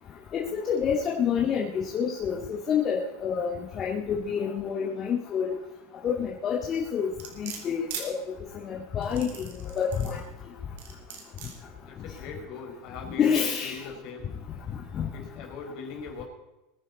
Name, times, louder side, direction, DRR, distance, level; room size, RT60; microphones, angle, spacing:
voice 1, 0.3-5.6 6.0-7.1 7.4-8.1 8.6-10.2 13.2-13.8, left 7 dB, 35° left, -4 dB, 2.1 m, -28 dB
sound 1, 7.2-8.1 9.0-10.2 10.8-11.5 12.2-12.3, right 7 dB, 80° right, 3.6 m, -39 dB
voice 2, 11.9-14.3 15.1-16.2, left 5 dB, 55° left, 1 dB, 4.8 m, -40 dB
22.0 x 10.0 x 4.2 m, 0.97 s
supercardioid pair, 125°, 0 cm